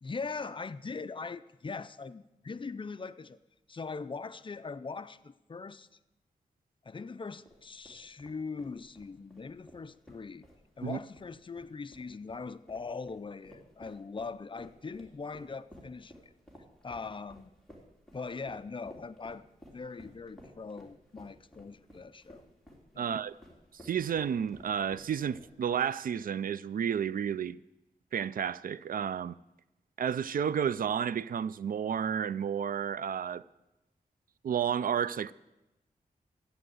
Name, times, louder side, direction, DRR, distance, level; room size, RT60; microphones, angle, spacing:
voice 1, 0.0-3.4 3.7-5.9 6.8-10.5 10.8-16.2 16.8-17.5 18.1-19.4 19.7-22.4 22.9-23.1, left 4 dB, 35° left, 0.5 m, -41 dB
sound 1, 7.5-25.8, equal, ahead, 2.8 m, -55 dB
voice 2, 23.0-23.3 23.8-27.6 28.1-29.4 30.0-33.4 34.4-35.3, right 8 dB, 70° right, 0.4 m, -31 dB
13.5 x 8.7 x 7.8 m
wide cardioid pair, 125°, 15 cm